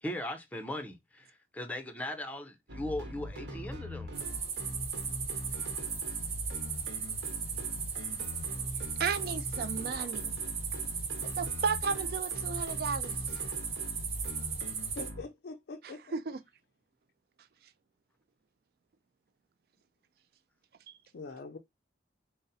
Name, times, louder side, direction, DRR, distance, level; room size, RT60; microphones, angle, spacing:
voice 1, 0.0-4.1, left 1 dB, 10° left, 0.5 m, -38 dB
sound 1, 2.7-15.2, equal, 85° right, 1.0 m, -41 dB
sound 2, 4.1-15.1, right 6 dB, 35° right, 0.7 m, -37 dB
voice 2, 9.0-10.4 11.4-13.2 15.8-16.4 20.9-21.0, right 5 dB, 55° right, 0.4 m, -34 dB
voice 3, 15.0-16.0 21.1-21.6, left 3 dB, 65° left, 0.4 m, -43 dB
3.9 x 2.0 x 3.9 m
head